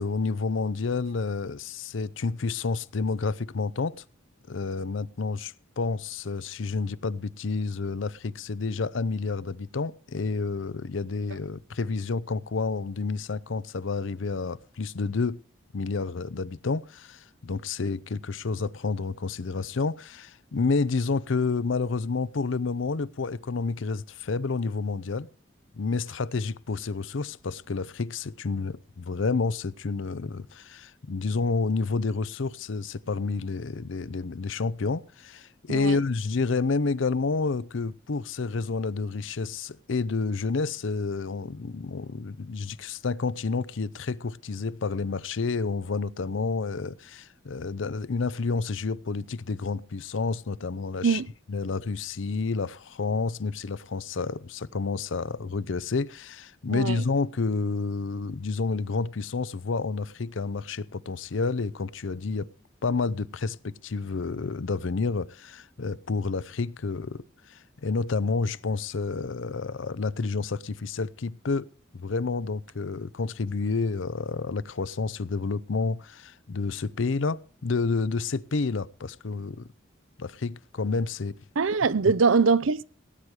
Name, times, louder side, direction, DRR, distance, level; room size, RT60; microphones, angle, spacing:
voice 1, 0.0-4.0 4.5-15.4 15.7-25.3 25.7-51.2 51.5-62.5 62.8-67.2 67.5-79.7 80.2-81.3, left 4 dB, 75° left, 0.6 m, -29 dB
voice 2, 56.7-57.0 81.6-82.8, right 5 dB, 90° right, 0.6 m, -22 dB
17.5 x 9.8 x 4.8 m
head